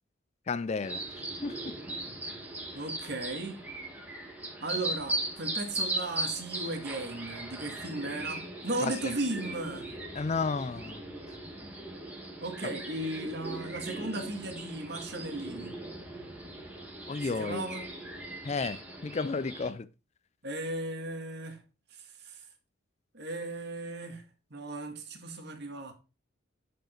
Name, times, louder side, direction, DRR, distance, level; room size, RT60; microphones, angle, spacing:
voice 1, 0.5-1.0 1.4-1.6 8.8-8.9 10.2-11.0 17.1-17.7 18.4-19.9, left 4 dB, 35° left, 0.4 m, -32 dB
sound 1, 0.8-19.7, right 1 dB, 10° right, 2.2 m, -39 dB
voice 2, 2.7-3.6 4.6-9.9 12.4-15.8 17.2-17.9 20.4-21.6 22.2-22.4 23.1-24.2 24.5-25.9, right 2 dB, 55° right, 1.9 m, -36 dB
10.5 x 5.2 x 4.4 m
head